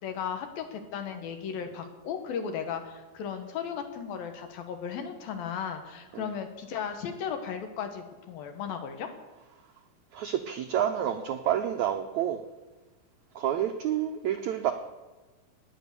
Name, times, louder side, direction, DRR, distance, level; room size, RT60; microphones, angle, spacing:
voice 1, 0.0-9.1, left 7 dB, 70° left, 6 dB, 3.2 m, -36 dB
voice 2, 10.1-12.4 13.3-14.7, right 10 dB, 90° right, 6 dB, 1.6 m, -29 dB
17.0 x 10.5 x 6.9 m, 1.2 s
omnidirectional pair, 4.4 m